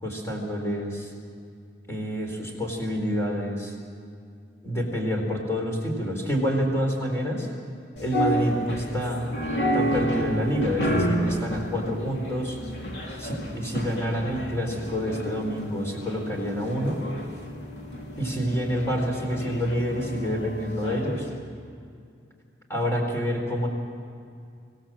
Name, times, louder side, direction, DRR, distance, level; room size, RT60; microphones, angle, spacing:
voice 1, 0.0-1.1 1.9-3.7 4.6-7.5 8.0-9.3 9.7-12.6 13.2-17.0 18.2-21.3 22.7-23.7, equal, 15° left, 0 dB, 4.1 m, -28 dB
sound 1, 8.0-21.2, equal, 75° left, 2.9 m, -30 dB
26.0 x 17.5 x 7.6 m, 2.3 s
head